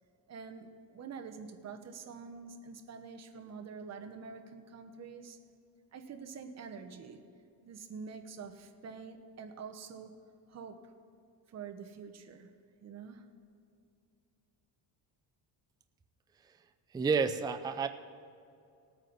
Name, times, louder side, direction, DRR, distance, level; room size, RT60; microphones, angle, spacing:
voice 1, 0.3-5.4 5.9-7.2 7.6-10.2 10.5-10.9 11.5-12.5 12.8-13.3, right 5 dB, 35° right, 6 dB, 1.0 m, -46 dB
voice 2, 16.9-17.9, right 5 dB, 10° right, 8 dB, 0.3 m, -29 dB
18.5 x 9.0 x 4.0 m, 2.5 s
cardioid pair, 140°, 43 cm